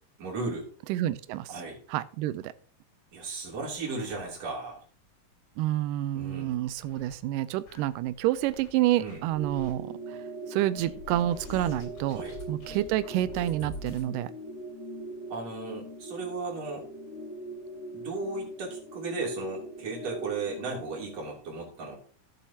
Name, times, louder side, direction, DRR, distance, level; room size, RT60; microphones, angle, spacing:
voice 1, 0.2-0.7 1.5-1.8 3.1-4.8 6.1-6.5 9.0-9.2 12.1-12.4 15.3-16.9 17.9-22.0, right 3 dB, 50° right, -2 dB, 4.1 m, -35 dB
voice 2, 0.9-1.5 1.9-2.5 5.6-10.2 10.5-14.3, right 14 dB, 85° right, 14 dB, 2.2 m, -28 dB
sound 1, 3.2-4.7 5.1-5.2 5.5-5.6 6.2-7.1 7.6-8.7 9.0-9.7 10.8-14.1, left 2 dB, 50° left, 3.8 m, -46 dB
sound 2, 9.3-21.2, right 2 dB, 70° left, 0.9 m, -41 dB
16.0 x 7.2 x 2.8 m, 0.43 s
omnidirectional pair, 3.8 m